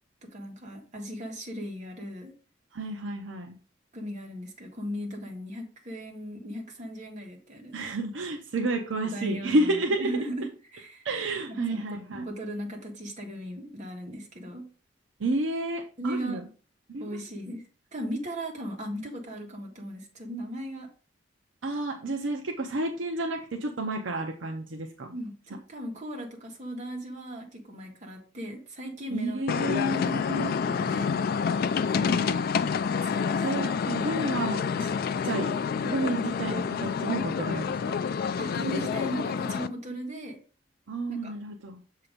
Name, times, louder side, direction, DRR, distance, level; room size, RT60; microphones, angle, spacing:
voice 1, 0.2-2.3 3.9-7.8 9.0-11.0 11.5-14.7 16.0-16.4 17.0-17.7 17.9-20.9 25.1-30.3 30.7-31.1 31.9-32.4 33.0-33.4 38.3-40.4 41.1-41.3, equal, 40° right, -1 dB, 1.5 m, -37 dB
voice 2, 2.7-3.6 7.7-10.1 11.0-12.3 15.2-16.5 16.9-17.2 21.6-25.1 29.1-30.5 33.4-34.9 35.2-35.6 35.8-38.0 38.7-38.8 40.9-41.8, right 2 dB, 70° right, 2 dB, 0.7 m, -30 dB
sound 1, 29.5-39.7, left 6 dB, 50° left, 0.3 m, -28 dB
6.9 x 2.9 x 5.0 m, 0.39 s
head